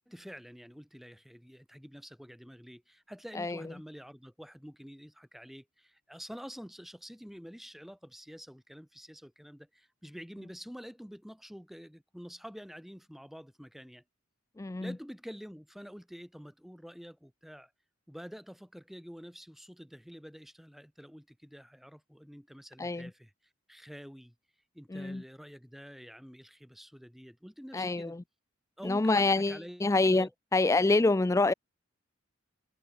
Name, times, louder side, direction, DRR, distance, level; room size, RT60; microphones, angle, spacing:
voice 1, 0.1-14.0 14.8-17.7 18.1-23.3 23.7-24.3 24.7-28.1 28.8-30.3, equal, ahead, 7.3 m, -48 dB
voice 2, 14.6-14.9 22.8-23.1 24.9-25.2 27.7-28.2 28.8-31.5, left 2 dB, 15° left, 0.3 m, -27 dB
head